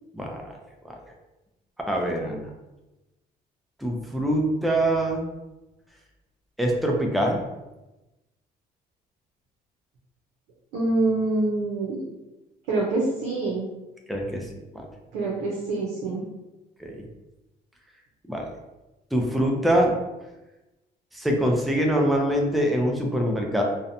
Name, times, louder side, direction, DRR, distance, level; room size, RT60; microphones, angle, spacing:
voice 1, 0.1-0.5 0.8-0.9 1.9-2.5 3.8-5.3 6.6-7.4 14.1-14.4 14.7-14.9 16.8-17.0 18.3-18.5 19.1-19.9 21.1-23.6, right 1 dB, ahead, 1 dB, 0.4 m, -24 dB
voice 2, 10.7-12.0 12.7-13.7 15.1-16.3, right 2 dB, 90° right, -3 dB, 0.6 m, -25 dB
2.7 x 2.1 x 2.5 m, 1.0 s
cardioid pair, 110°, 17 cm